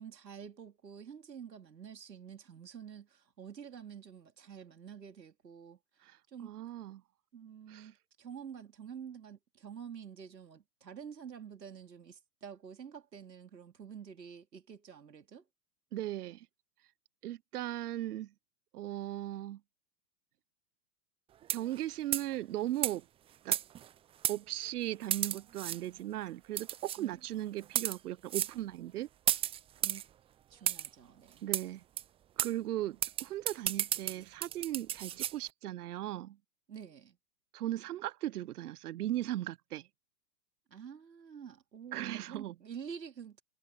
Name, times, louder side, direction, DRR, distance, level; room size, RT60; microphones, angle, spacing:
voice 1, 0.0-6.5 7.3-15.4 27.0-27.2 29.8-30.0 30.5-31.5 36.7-37.2 40.7-43.4, right 7 dB, 90° right, 2.7 m, -48 dB
voice 2, 6.0-7.0 7.7-7.9 15.9-16.5 17.2-18.3 18.7-19.6 21.5-23.0 23.4-23.6 24.3-29.1 31.4-31.8 32.4-36.4 37.5-39.9 41.9-42.5, right 14 dB, 65° right, 1.0 m, -37 dB
sound 1, 21.4-21.8 22.1-22.3 22.8-22.9 23.5-23.9 24.2-24.4 25.1-25.8 26.6-27.0 27.6-28.0 28.3-28.5 29.3-30.0 30.7-30.9 31.5-31.6 32.0-32.1 32.4-32.5 33.0-35.3, right 11 dB, 10° right, 0.5 m, -33 dB
hypercardioid pair, 115°, 49 cm